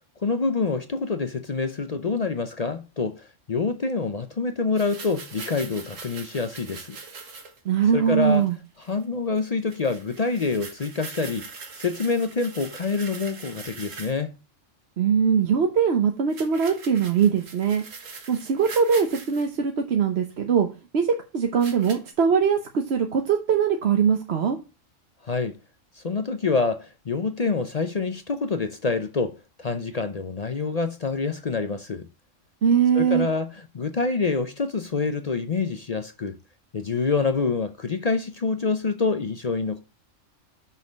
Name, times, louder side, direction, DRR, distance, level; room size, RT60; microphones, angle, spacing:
voice 1, 0.2-7.0 7.9-8.5 8.9-11.5 11.8-14.3 25.2-25.6 26.0-32.1 32.9-33.5 33.7-36.4 36.7-39.8, left 4 dB, 40° left, 0.6 m, -26 dB
sound 1, 4.8-7.6 8.1-8.5 8.8-9.0 9.4-9.5 9.7-14.2 16.3-19.5 20.3-20.4 21.6-22.1, right 4 dB, 85° right, 1.7 m, -42 dB
voice 2, 7.6-8.6 15.0-17.8 18.3-20.7 20.9-24.6 32.6-33.3, right 7 dB, 60° right, 1.1 m, -21 dB
6.3 x 5.6 x 5.2 m
omnidirectional pair, 1.3 m